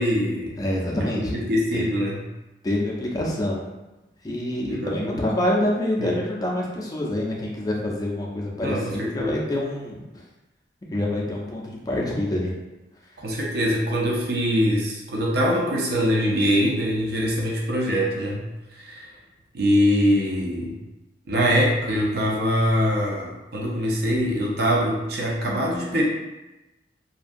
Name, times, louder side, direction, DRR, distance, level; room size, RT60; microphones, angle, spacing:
voice 1, 0.0-0.6 1.1-2.2 4.7-5.3 6.0-6.1 8.6-9.4 13.2-18.5 18.7-19.1 19.5-20.7 21.3-26.0, equal, 60° right, -2 dB, 0.5 m, -23 dB
voice 2, 0.6-1.4 1.7-1.9 2.6-3.6 4.2-10.0 10.9-12.5, left 1 dB, 20° left, -2 dB, 0.4 m, -26 dB
2.5 x 2.2 x 2.5 m, 1.0 s
head